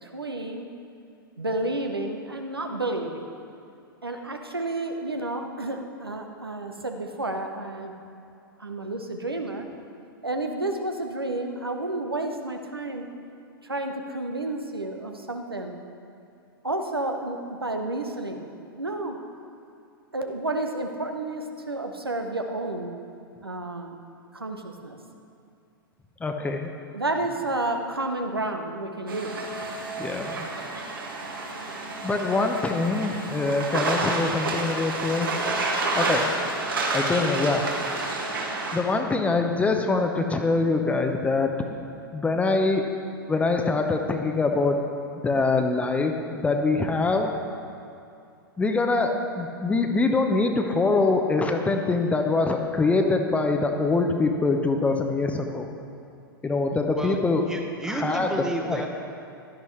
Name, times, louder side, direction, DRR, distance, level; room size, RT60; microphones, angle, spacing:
voice 1, 0.0-0.7 1.4-3.3 4.0-7.9 8.6-9.7 10.2-13.1 13.7-15.8 16.6-18.5 18.8-19.2 20.1-22.9 23.4-23.9 24.3-25.0 26.9-29.3, right 2 dB, 85° right, 4 dB, 1.0 m, -31 dB
voice 2, 26.2-26.7 30.0-30.5 32.0-35.3 35.9-36.3 36.9-37.6 38.7-41.5 42.1-42.9 43.3-44.8 45.1-47.4 48.6-55.7 56.4-57.4 57.9-58.3 58.6-58.8, left 3 dB, 10° left, 4 dB, 0.8 m, -24 dB
sound 1, 29.1-38.8, right 2 dB, 65° right, 2.1 m, -29 dB
voice 3, 57.5-58.9, right 2 dB, 5° right, 2 dB, 1.2 m, -31 dB
16.0 x 12.0 x 3.2 m, 2.5 s
figure-of-eight pair, 100°, 12 cm